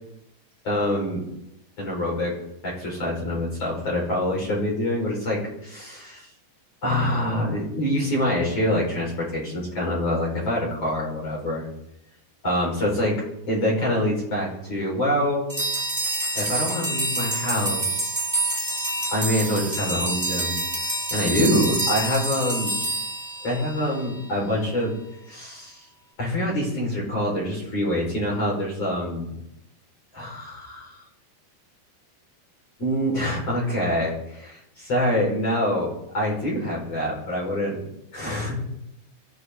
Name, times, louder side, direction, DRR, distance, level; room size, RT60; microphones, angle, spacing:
voice 1, 0.6-1.2 1.8-2.3 2.6-6.3 6.8-11.7 12.4-13.2 13.5-15.5 16.3-18.2 19.1-20.6 21.1-22.8 23.4-24.9 25.3-25.8 26.2-29.4 30.1-30.9 32.8-35.9 36.1-37.8 38.1-38.6, left 1 dB, 35° left, -5 dB, 6.4 m, -25 dB
sound 1, 15.5-24.0, right 2 dB, 10° right, 3.2 m, -27 dB
24.5 x 14.5 x 4.1 m, 0.82 s
omnidirectional pair, 5.1 m